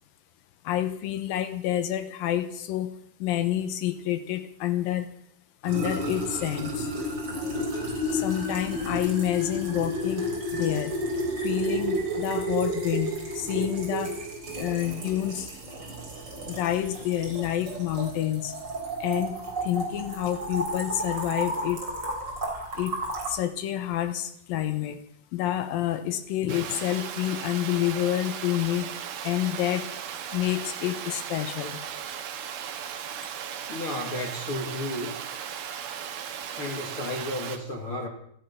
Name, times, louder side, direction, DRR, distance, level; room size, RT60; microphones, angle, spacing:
voice 1, 0.7-5.1 5.6-6.9 8.1-10.3 10.5-10.9 11.4-14.2 14.5-15.5 16.5-18.5 19.0-21.8 22.8-23.0 23.3-25.0 25.3-28.9 29.2-29.9 30.3-31.8 36.6-36.8, left 12 dB, 80° left, 9 dB, 2.0 m, -28 dB
sound 1, 5.6-23.3, equal, 25° right, 4.1 m, -32 dB
Water, 26.5-37.6, right 8 dB, 65° right, 2.9 m, -37 dB
voice 2, 33.7-35.1 36.6-38.1, left 1 dB, 45° left, 0 dB, 1.8 m, -33 dB
17.5 x 14.0 x 5.8 m, 0.67 s
omnidirectional pair, 5.4 m